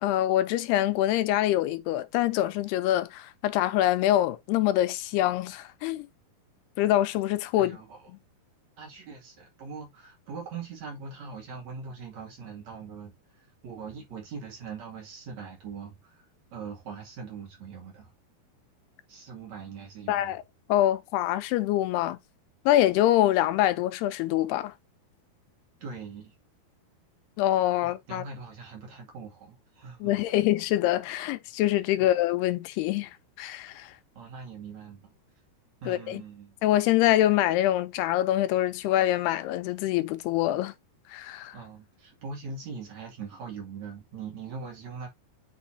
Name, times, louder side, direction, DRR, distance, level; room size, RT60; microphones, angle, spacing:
voice 1, 0.0-6.1 6.8-7.8 20.1-20.4 20.7-22.2 22.7-24.7 27.4-28.2 30.0-33.1 33.4-33.9 35.9-36.2 36.6-40.7 41.1-41.6, left 13 dB, 85° left, 2.7 m, -25 dB
voice 2, 7.6-8.1 8.8-16.2 16.5-18.1 19.1-20.4 25.8-26.3 27.8-30.2 32.0-32.1 34.1-35.1 35.8-36.6 41.5-45.1, right 5 dB, 50° right, 3.1 m, -41 dB
8.2 x 5.2 x 2.7 m
omnidirectional pair, 4.7 m